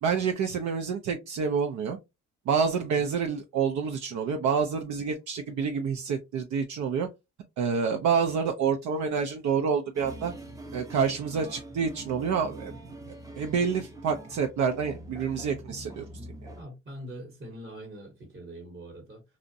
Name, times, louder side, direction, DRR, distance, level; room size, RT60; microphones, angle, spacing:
voice 1, 0.0-2.0 2.5-7.1 7.6-10.3 10.7-12.7 13.4-16.1, right 6 dB, 70° right, 0.5 m, -28 dB
sound 1, 9.9-16.6, right 1 dB, 10° right, 0.5 m, -44 dB
voice 2, 16.5-19.2, right 1 dB, 35° right, 1.0 m, -43 dB
2.5 x 2.1 x 2.6 m
cardioid pair, 90°, 30 cm